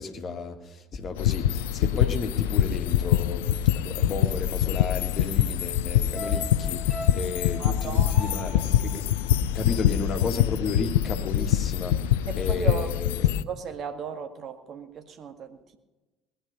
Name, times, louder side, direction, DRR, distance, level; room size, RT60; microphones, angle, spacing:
voice 1, 0.0-9.0 9.5-12.0 12.3-13.4, left 4 dB, 40° left, 4 dB, 2.1 m, -33 dB
sound 1, 1.2-13.4, left 11 dB, 70° left, 0.5 m, -24 dB
sound 2, 6.1-10.5 10.8-10.9, equal, 10° right, 5.9 m, -41 dB
voice 2, 7.6-8.4 12.3-12.9 13.4-15.8, right 6 dB, 45° right, 7 dB, 1.9 m, -36 dB
20.0 x 11.5 x 5.5 m, 1.1 s
figure-of-eight pair, 60°, 0 cm